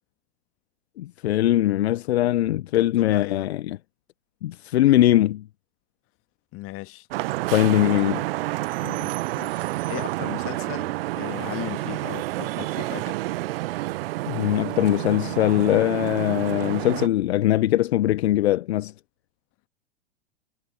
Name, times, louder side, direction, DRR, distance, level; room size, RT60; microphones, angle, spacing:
voice 1, 1.0-3.8 4.4-5.4 7.5-8.2 14.3-18.9, left 14 dB, 60° left, 1.1 m, -21 dB
voice 2, 2.7-3.5 6.5-7.1 7.8-7.9 8.8-13.2, left 21 dB, 35° left, 2.0 m, -37 dB
Vehicle horn car horn honking / Traffic noise roadway noise, 7.1-17.1, right 18 dB, 50° right, 1.1 m, -29 dB
figure-of-eight pair, 95°, 36 cm